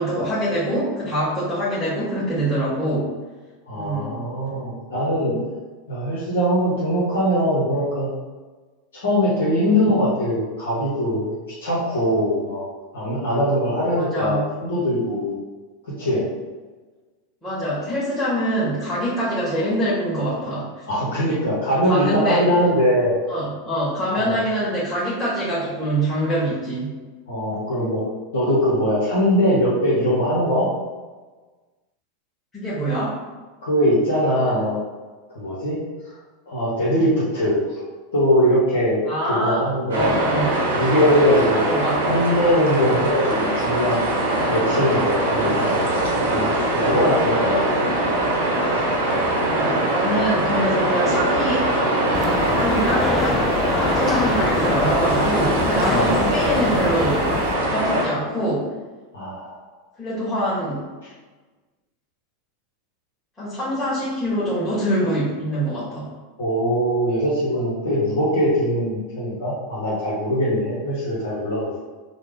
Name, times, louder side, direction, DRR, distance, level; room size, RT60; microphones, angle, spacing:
voice 1, 0.0-3.1 3.7-4.2 14.0-14.4 17.4-20.8 21.3-21.4 21.7-22.5 23.3-26.9 32.5-33.2 39.0-39.7 39.9-40.7 41.6-42.2 47.4-47.8 49.5-51.7 52.5-57.3 57.6-58.7 60.0-60.9 63.4-66.1, equal, 5° left, -11 dB, 1.3 m, -24 dB
voice 2, 3.7-5.4 5.9-8.1 8.9-11.3 11.6-12.6 12.9-15.4 15.8-16.2 20.9-23.2 24.1-24.4 27.3-28.0 28.3-30.7 33.6-34.8 35.3-35.8 36.5-37.6 38.1-40.2 40.7-41.6 42.0-44.0 44.5-45.9 46.3-47.4 55.9-56.2 59.1-59.5 61.0-61.1 66.4-71.9, equal, 70° left, -9 dB, 0.9 m, -21 dB
sound 1, 39.9-58.1, right 1 dB, 70° right, 0.7 m, -22 dB
sound 2, 52.1-57.6, left 5 dB, 25° left, 0.3 m, -27 dB
3.2 x 2.1 x 3.5 m, 1.3 s
figure-of-eight pair, 85°, 0 cm